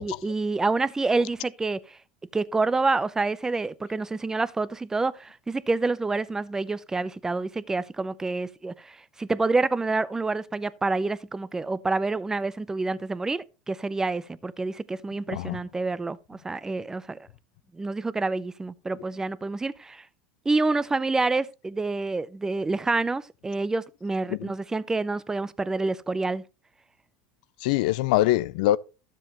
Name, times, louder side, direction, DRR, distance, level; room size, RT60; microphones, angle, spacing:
voice 1, 0.0-2.0 2.3-17.2 17.7-20.0 20.5-26.4, right 3 dB, 10° right, 0.6 m, -28 dB
voice 2, 15.3-15.6 24.3-24.5 27.6-28.8, left 15 dB, 70° left, 0.5 m, -24 dB
12.5 x 7.5 x 3.0 m
supercardioid pair, 105°, 4 cm